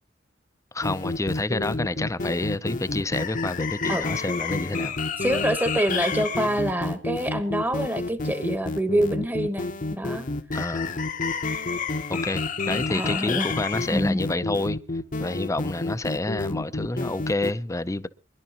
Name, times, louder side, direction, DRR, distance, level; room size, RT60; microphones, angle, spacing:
voice 1, 0.7-5.0 10.5-10.9 12.1-14.8 15.2-18.1, left 2 dB, 15° left, 0.6 m, -28 dB
sound 1, 0.8-17.5, left 3 dB, 45° left, 1.0 m, -29 dB
voice 2, 5.2-10.2 12.9-13.5 13.9-14.2, right 1 dB, 10° right, 1.1 m, -26 dB
24.5 x 11.5 x 2.9 m
head